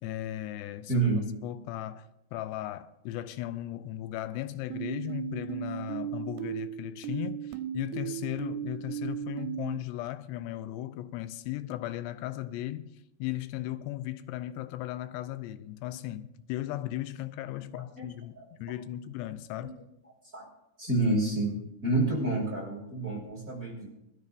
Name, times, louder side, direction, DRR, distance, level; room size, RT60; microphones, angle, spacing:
voice 1, 0.0-1.1 1.4-12.9 13.2-19.8, left 14 dB, 85° left, 2.7 m, -36 dB
voice 2, 0.9-1.2 18.0-18.1 18.4-18.5 19.6-19.7 20.3-20.5 20.8-23.9, right 2 dB, 25° right, 2.3 m, -28 dB
sound 1, 4.7-9.8, right 10 dB, 80° right, 2.9 m, -36 dB
22.0 x 13.0 x 2.6 m
omnidirectional pair, 4.9 m